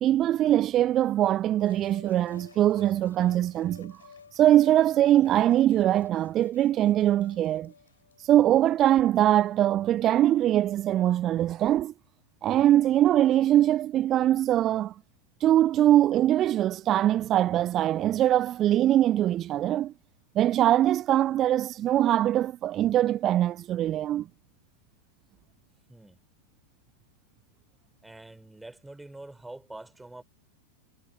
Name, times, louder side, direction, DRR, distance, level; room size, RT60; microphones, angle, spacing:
voice 1, 0.0-4.0 4.3-7.7 8.2-11.9 12.4-14.9 15.4-19.9 20.4-24.3, right 12 dB, 30° right, 0.4 m, -22 dB
sound 1, 1.6-8.3, left 6 dB, 70° left, 4.1 m, -53 dB
voice 2, 28.0-30.2, right 2 dB, 5° right, 4.2 m, -45 dB
figure-of-eight pair, 90°, 0 cm